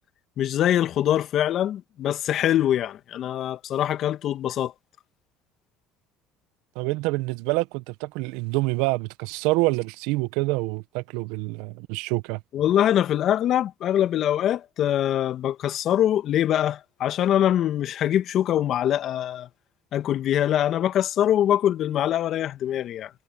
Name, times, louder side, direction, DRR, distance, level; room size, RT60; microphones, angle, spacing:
voice 1, 0.4-4.7 12.5-19.5 19.9-23.1, left 11 dB, 55° left, 1.7 m, -23 dB
voice 2, 6.7-12.4, right 22 dB, 75° right, 1.1 m, -26 dB
supercardioid pair, 80°, 0 cm